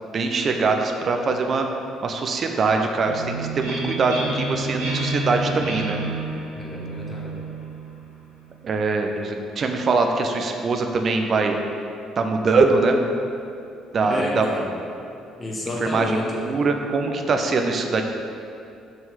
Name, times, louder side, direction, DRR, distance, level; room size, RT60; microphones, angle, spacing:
voice 1, 0.1-1.7 2.0-6.0 8.6-11.6 12.2-13.0 13.9-14.5 15.8-18.0, right 3 dB, 40° right, 4 dB, 0.7 m, -22 dB
sound 1, 3.0-8.6, right 2 dB, 75° right, 1.5 m, -30 dB
voice 2, 6.5-7.4 14.1-14.7 15.4-16.4, left 1 dB, 25° left, -2 dB, 1.5 m, -29 dB
6.4 x 4.5 x 5.8 m, 2.5 s
figure-of-eight pair, 50°, 0 cm